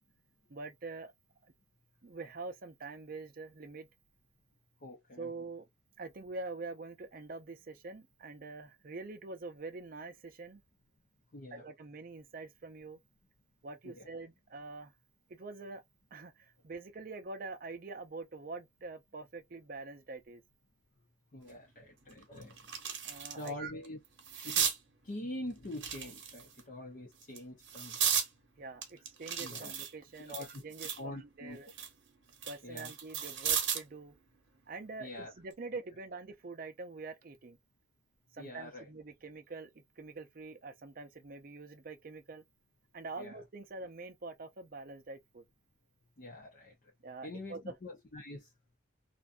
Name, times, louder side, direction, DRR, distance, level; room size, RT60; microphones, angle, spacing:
voice 1, 0.5-1.1 1.4-1.5 2.0-3.9 5.2-5.7 6.0-10.6 11.5-13.0 13.6-14.9 15.3-15.8 16.1-20.4 23.0-23.7 28.6-31.7 32.4-34.1 34.7-37.6 38.3-42.4 42.9-45.4 47.0-47.7, right 3 dB, 45° right, 0.5 m, -45 dB
voice 2, 4.8-5.3 11.3-11.6 13.8-14.1 21.3-22.7 23.4-24.0 24.4-24.7 25.0-28.0 29.4-29.7 30.3-30.6 31.0-31.6 32.6-32.9 35.0-35.3 38.4-38.9 43.2-43.4 46.2-46.9 47.2-48.5, left 1 dB, 45° left, 0.6 m, -44 dB
sound 1, 21.5-21.6 22.1-23.5 23.8-24.8 25.7-26.6 27.2-28.3 28.8-31.1 31.5-33.9 35.3-35.5, right 8 dB, 70° right, 0.8 m, -35 dB
2.5 x 2.2 x 2.4 m
head